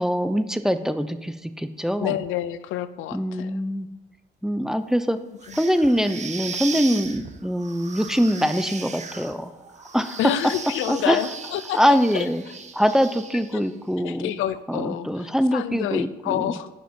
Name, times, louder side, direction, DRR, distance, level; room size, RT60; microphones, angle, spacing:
voice 1, 0.0-2.2 3.1-3.9 4.4-5.2 5.5-9.5 9.9-10.2 10.9-11.2 11.7-12.4 12.7-14.3 14.7-16.5, equal, ahead, 11 dB, 0.5 m, -23 dB
voice 2, 2.0-3.6 5.5-5.6 10.2-12.5 13.5-13.6 14.0-16.7, left 12 dB, 90° left, 14 dB, 0.5 m, -29 dB
sound 1, 5.4-13.7, right 5 dB, 35° right, 1.0 m, -37 dB
10.5 x 5.1 x 5.3 m, 1.1 s
cardioid pair, 90°, 20 cm